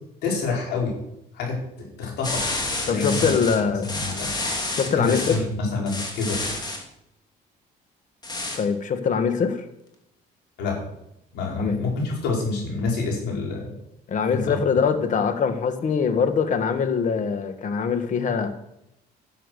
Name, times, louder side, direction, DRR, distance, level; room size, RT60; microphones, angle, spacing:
voice 1, 0.2-1.0 1.3-2.4 2.8-3.3 3.8-4.3 4.9-6.4 10.6-10.8 11.3-13.7 14.3-14.6, left 3 dB, 80° left, -2 dB, 5.3 m, -27 dB
sound 1, 2.2-5.4 5.9-6.8 8.2-8.6, left 2 dB, 25° left, 2.6 m, -29 dB
voice 2, 2.9-3.9 4.7-5.4 8.6-9.6 11.6-11.8 14.1-18.5, left 6 dB, 50° left, 8 dB, 1.7 m, -23 dB
11.0 x 8.4 x 6.7 m, 0.81 s
cardioid pair, 110°, 17 cm